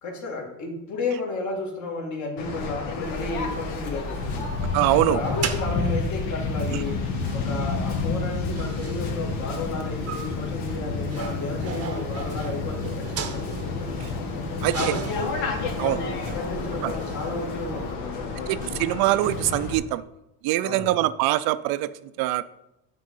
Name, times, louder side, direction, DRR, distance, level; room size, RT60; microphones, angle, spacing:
voice 1, 0.0-4.5 4.9-13.9 14.7-15.4 15.8-16.0 16.3-19.0 20.6-20.9, left 3 dB, 45° left, 1 dB, 2.3 m, -33 dB
Waves surf, 2.4-19.8, left 4 dB, 70° left, 1.7 m, -30 dB
sound 1, 3.0-18.0, right 7 dB, 35° right, 0.8 m, -38 dB
voice 2, 4.7-5.2 6.7-6.8 14.0-14.1 14.6-14.9 15.8-16.0 16.8-16.9 18.5-20.0 20.4-21.9 22.2-22.4, right 16 dB, 65° right, 15 dB, 0.5 m, -23 dB
9.0 x 3.8 x 5.6 m, 0.89 s
supercardioid pair, 110°, 40 cm